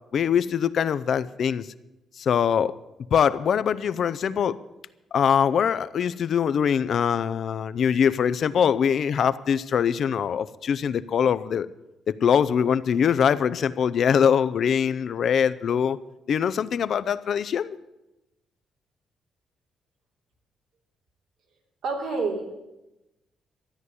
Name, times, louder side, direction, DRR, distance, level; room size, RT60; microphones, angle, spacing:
voice 1, 0.1-1.7 2.2-2.8 3.1-4.6 5.1-11.7 12.1-16.0 16.3-17.8, left 7 dB, 60° left, 15 dB, 0.6 m, -23 dB
voice 2, 21.8-22.5, right 3 dB, 85° right, 0 dB, 3.3 m, -28 dB
13.5 x 9.5 x 8.3 m, 0.96 s
cardioid pair, 90°, 0 cm